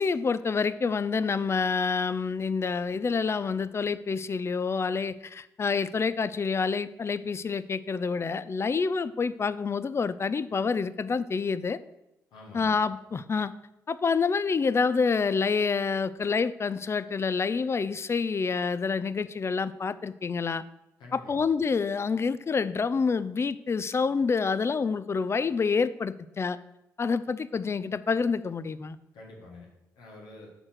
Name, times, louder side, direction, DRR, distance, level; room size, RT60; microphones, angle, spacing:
voice 1, 0.0-11.8 12.5-13.5 13.9-20.6 21.1-26.6 27.0-29.0, left 5 dB, 35° left, 15 dB, 0.4 m, -27 dB
voice 2, 12.3-12.8 21.0-21.5 29.1-29.7 29.9-30.5, left 2 dB, 75° left, -1 dB, 1.5 m, -47 dB
6.6 x 4.3 x 6.3 m, 0.91 s
hypercardioid pair, 45°, 8 cm